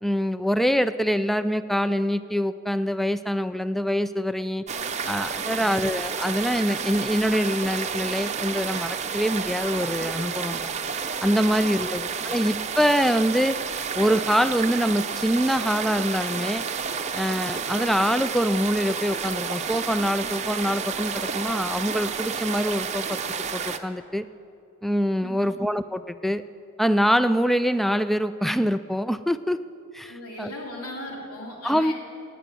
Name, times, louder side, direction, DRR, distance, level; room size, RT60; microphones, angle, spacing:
voice 1, 0.0-4.6 5.1-10.7 11.2-13.6 13.9-16.6 17.1-23.2 23.5-24.3 24.8-26.4 26.8-29.6 29.9-30.1 30.4-30.5 31.6-31.9, equal, ahead, 13 dB, 0.3 m, -24 dB
sound 1, 4.7-23.8, right 6 dB, 30° right, 0.7 m, -30 dB
voice 2, 11.4-11.9 12.2-12.3 25.2-25.5 30.0-31.9, left 1 dB, 90° left, -1 dB, 3.1 m, -39 dB
17.5 x 9.3 x 7.6 m, 2.7 s
head